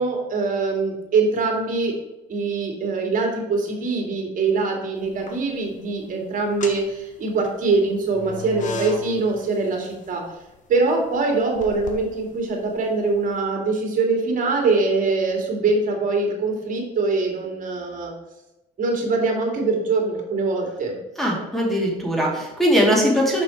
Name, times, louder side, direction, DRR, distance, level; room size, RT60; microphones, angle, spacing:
voice 1, 0.0-1.9 2.3-10.2 10.7-18.1 18.8-21.0, right 3 dB, 50° right, 1 dB, 2.5 m, -23 dB
sound 1, 5.0-5.7 6.4-13.3, left 2 dB, 50° left, 1.2 m, -36 dB
voice 2, 21.2-23.4, equal, ahead, -2 dB, 2.6 m, -20 dB
6.0 x 6.0 x 4.5 m, 0.93 s
cardioid pair, 110°, 17 cm